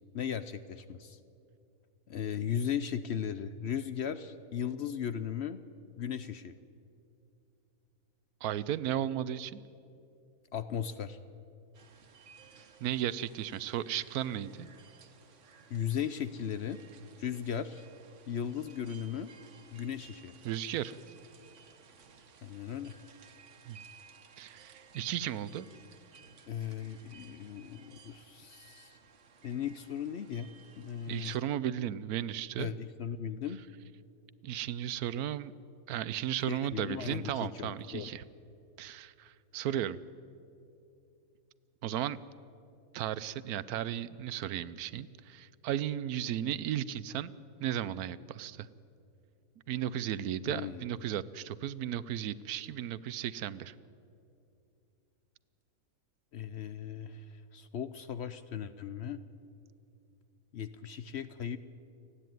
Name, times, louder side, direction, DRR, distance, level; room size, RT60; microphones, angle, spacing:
voice 1, 0.1-1.2 2.1-5.6 6.0-6.6 10.5-11.2 15.7-16.8 17.2-17.8 18.3-19.3 19.7-20.4 22.4-23.0 26.5-29.0 29.4-31.3 32.6-33.6 36.5-38.1 50.5-50.9 56.3-59.2 60.5-61.6, left 8 dB, 60° left, 12 dB, 0.8 m, -37 dB
voice 2, 8.4-9.6 12.8-14.7 20.4-20.9 23.7-23.8 24.4-25.7 31.1-32.7 34.4-35.5 35.9-38.2 38.8-40.0 41.8-42.2 42.9-47.3 47.6-48.7 49.7-53.7, right 11 dB, 80° right, 17 dB, 1.1 m, -35 dB
sound 1, 11.7-31.4, right 6 dB, 55° right, 1.3 m, -58 dB
29.0 x 10.0 x 9.2 m, 2.6 s
omnidirectional pair, 1.6 m